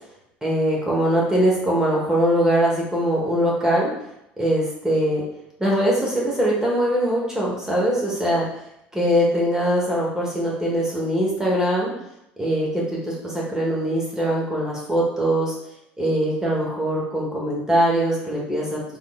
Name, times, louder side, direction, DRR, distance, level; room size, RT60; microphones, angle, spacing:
voice 1, 0.4-3.9 4.4-5.2 5.6-8.5 8.9-11.9 12.4-15.5 16.0-18.8, equal, 10° right, -4 dB, 1.2 m, -22 dB
3.5 x 3.5 x 2.2 m, 0.82 s
hypercardioid pair, 75°, 6 cm